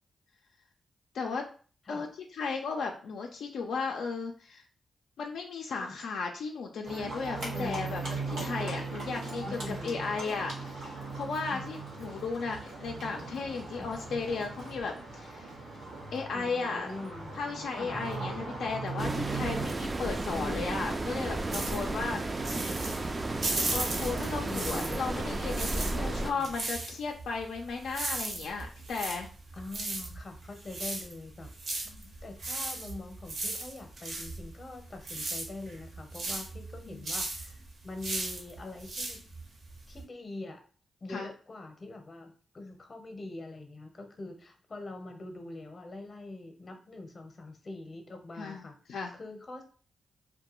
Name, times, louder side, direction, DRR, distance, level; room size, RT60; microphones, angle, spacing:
voice 1, 1.1-1.5 1.9-2.1 2.3-4.6 5.2-8.0 8.4-15.5 16.1-16.9 17.3-22.2 23.7-29.3 31.9-32.1 36.9-37.1 41.1-41.3 48.4-49.1, left 4 dB, 80° left, 1 dB, 0.4 m, -35 dB
Livestock farm animals working animals, 6.8-19.7, right 3 dB, 90° right, 1.0 m, -39 dB
voice 2, 7.3-8.2 9.4-10.2 11.5-11.7 13.7-13.9 16.3-17.3 17.7-18.0 19.3-19.6 20.0-20.8 21.9-22.2 24.4-25.1 25.8-26.5 29.5-31.5 32.2-39.2 39.9-40.6 41.0-48.8 49.1-49.6, left 2 dB, 40° left, 5 dB, 0.7 m, -43 dB
sound 1, 19.0-26.3, right 2 dB, 35° right, 0.3 m, -33 dB
sound 2, 21.5-25.1 25.4-40.0, right 2 dB, 65° right, 0.8 m, -36 dB
2.2 x 2.2 x 2.9 m, 0.41 s
cardioid pair, 55°, 0 cm